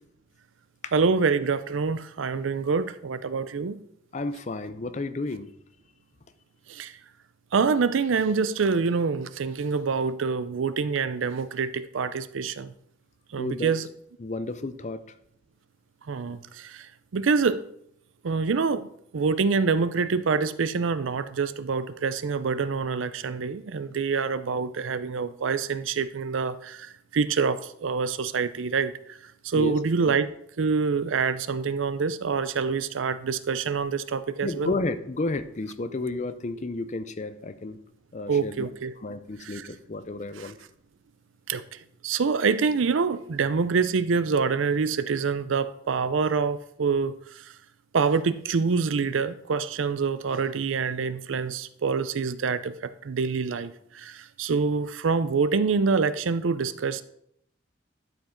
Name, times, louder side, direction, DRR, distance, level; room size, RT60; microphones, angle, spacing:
voice 1, 0.9-3.8 6.7-6.9 7.5-12.7 13.3-13.9 16.1-17.6 18.2-18.9 19.1-29.2 29.4-30.3 30.6-34.7 38.3-38.9 39.4-39.7 40.4-40.5 41.5-41.6 42.0-47.5 47.9-57.0, right 5 dB, 85° right, 14 dB, 0.5 m, -26 dB
voice 2, 4.1-5.5 13.4-13.7 14.2-15.0 29.5-29.8 30.1-30.2 34.4-37.8 38.1-38.7 39.0-40.6, left 2 dB, 35° left, 11 dB, 0.5 m, -32 dB
11.5 x 5.0 x 3.8 m, 0.71 s
head